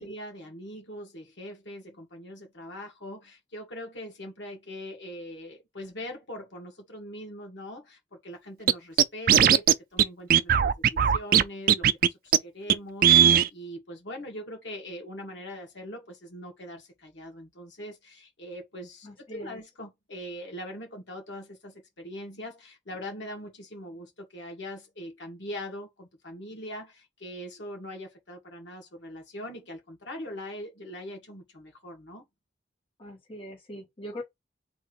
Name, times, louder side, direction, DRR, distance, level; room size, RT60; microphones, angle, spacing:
voice 1, 0.0-32.2, equal, 85° left, 1.8 m, -42 dB
Scratching (performance technique), 8.7-8.8 9.0-9.7 10.0-10.1 10.3-11.4 11.7-12.1 12.3-12.4 12.7-12.8 13.0-13.5, right 9 dB, 50° right, 0.3 m, -18 dB
voice 2, 19.0-19.6 33.0-34.2, equal, 30° left, 1.6 m, -41 dB
3.5 x 2.8 x 4.6 m
head